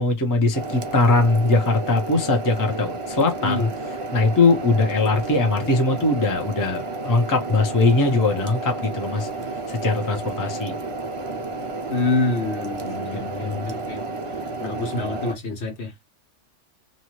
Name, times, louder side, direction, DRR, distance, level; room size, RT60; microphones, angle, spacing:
voice 1, 0.0-3.7 4.1-9.3 9.7-10.7 12.8-13.7, left 3 dB, 20° left, 0.6 m, -21 dB
sound 1, 0.5-15.3, right 3 dB, 45° right, 0.4 m, -31 dB
voice 2, 11.9-14.0 14.6-16.0, left 2 dB, 65° left, 1.1 m, -27 dB
2.6 x 2.3 x 2.9 m
omnidirectional pair, 1.3 m